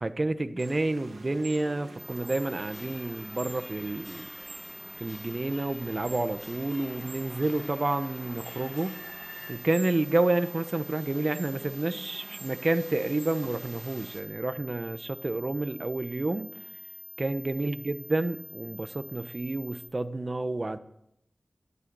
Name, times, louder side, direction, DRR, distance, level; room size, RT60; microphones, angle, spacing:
voice 1, 0.0-4.3 5.0-9.0 9.5-16.5 17.2-20.8, right 2 dB, 40° right, 11 dB, 1.0 m, -29 dB
sound 1, 0.6-14.2, right 3 dB, 75° right, 2.5 m, -49 dB
sound 2, 2.0-19.9, right 1 dB, ahead, 3.0 m, -46 dB
sound 3, 2.4-9.5, left 2 dB, 60° left, 4.5 m, -48 dB
14.0 x 12.0 x 6.9 m, 0.77 s
wide cardioid pair, 60°, 0 cm